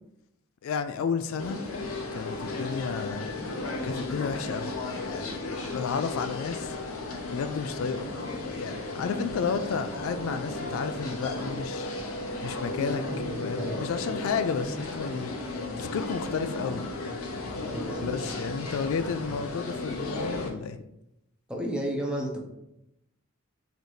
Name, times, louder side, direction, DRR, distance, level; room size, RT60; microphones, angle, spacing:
voice 1, 0.6-1.7 2.1-3.3 3.8-4.8 5.1-6.8 7.3-8.2 8.4-11.9 12.4-13.0 13.4-15.3 15.8-16.9 18.0-20.8, left 5 dB, 70° left, 10 dB, 0.3 m, -32 dB
sound 1, 1.4-20.5, left 2 dB, 85° left, 0.8 m, -34 dB
voice 2, 12.8-13.9 17.6-18.1 21.5-22.4, equal, 5° right, 0 dB, 0.6 m, -33 dB
4.0 x 2.6 x 4.7 m, 0.85 s
head